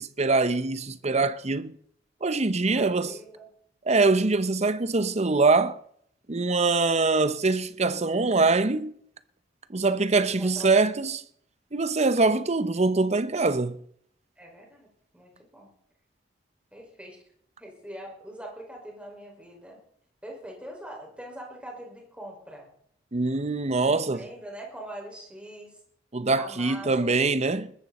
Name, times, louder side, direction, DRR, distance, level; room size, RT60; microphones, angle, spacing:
voice 1, 0.0-1.8 2.2-3.2 3.9-5.8 6.3-8.9 9.7-11.2 11.7-13.8 23.1-24.3 26.1-27.7, right 3 dB, 35° right, 0.9 m, -23 dB
voice 2, 2.7-3.5 10.3-10.8 14.4-14.9 15.1-15.7 16.7-17.2 17.6-19.8 20.2-22.7 23.8-25.8 26.4-27.1, right 1 dB, 5° right, 5.6 m, -43 dB
20.5 x 14.0 x 4.3 m
head